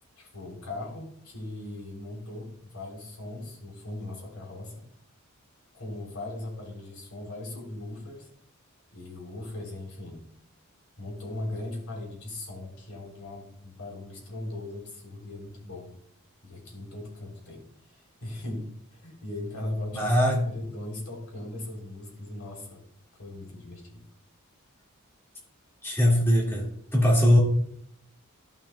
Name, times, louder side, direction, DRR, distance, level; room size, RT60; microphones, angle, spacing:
voice 1, 0.2-4.7 5.7-8.3 8.9-10.2 11.0-15.9 16.4-20.1 20.4-22.8 23.2-24.0, left 1 dB, 85° left, 0 dB, 3.6 m, -39 dB
voice 2, 19.9-20.4 25.8-27.4, equal, 10° left, -4 dB, 2.0 m, -21 dB
15.5 x 5.9 x 2.3 m, 0.67 s
head